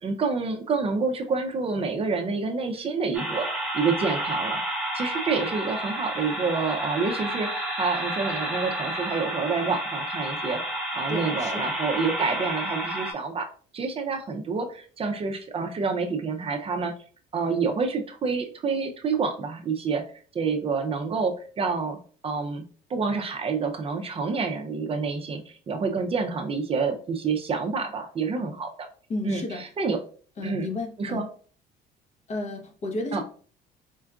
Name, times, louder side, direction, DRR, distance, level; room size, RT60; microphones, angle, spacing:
voice 1, 0.0-4.6 4.9-10.6 10.9-13.5 13.7-16.9 17.3-20.0 20.3-22.0 22.2-22.6 22.9-28.7 29.2-30.0 30.4-30.7 31.0-31.3 33.1-33.2, right 4 dB, 35° right, 4 dB, 0.5 m, -28 dB
sound 1, 3.1-13.1, right 1 dB, 5° right, 1.0 m, -30 dB
voice 2, 11.1-11.7 29.1-29.6 30.4-31.3 32.3-33.2, left 2 dB, 40° left, 4 dB, 0.8 m, -33 dB
4.4 x 2.4 x 2.3 m, 0.43 s
cardioid pair, 110°, 17 cm